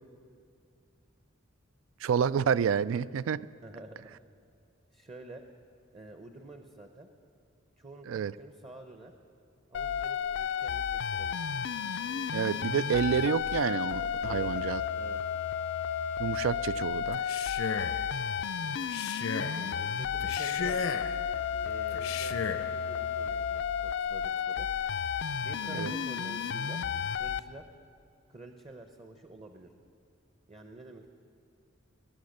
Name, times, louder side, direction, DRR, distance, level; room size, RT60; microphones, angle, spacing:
voice 1, 2.0-3.4 8.1-8.3 12.3-14.8 16.2-17.2 25.7-25.9, right 7 dB, 70° right, 18 dB, 0.3 m, -29 dB
voice 2, 3.6-4.2 4.9-5.4 5.9-7.1 7.8-9.1 9.7-11.4 14.2-14.5 14.9-15.2 19.5-20.9 21.6-24.7 25.4-26.8 27.1-27.7 28.3-29.7 30.5-31.1, right 2 dB, 25° right, 6 dB, 0.7 m, -48 dB
sound 1, 9.7-27.4, left 7 dB, 60° left, 0.4 m, -32 dB
Male speech man speaking, 17.1-18.0 18.8-19.6 20.2-21.2 21.9-22.7, left 5 dB, 80° left, 0.7 m, -35 dB
21.5 x 9.5 x 6.6 m, 2.3 s
head